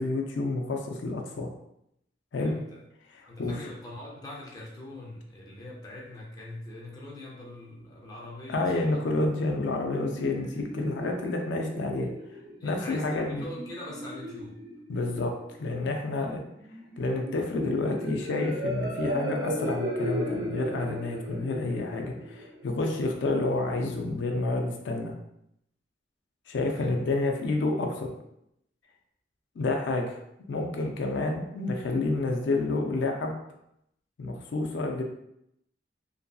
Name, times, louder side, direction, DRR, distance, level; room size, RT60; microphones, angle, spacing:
voice 1, 0.0-1.5 2.3-2.5 3.1-3.6 8.5-12.1 12.6-13.4 14.9-15.3 15.6-16.4 17.0-25.1 26.5-28.1 29.6-30.2 30.5-33.4 34.2-35.0, left 2 dB, 75° left, 3 dB, 0.4 m, -29 dB
voice 2, 2.3-2.8 3.3-9.3 12.6-14.6 16.2-16.3 26.6-27.0, left 1 dB, 20° left, -3 dB, 0.4 m, -43 dB
sound 1, 9.6-23.2, equal, 65° right, 0.8 m, -37 dB
2.6 x 2.6 x 2.2 m, 0.78 s
head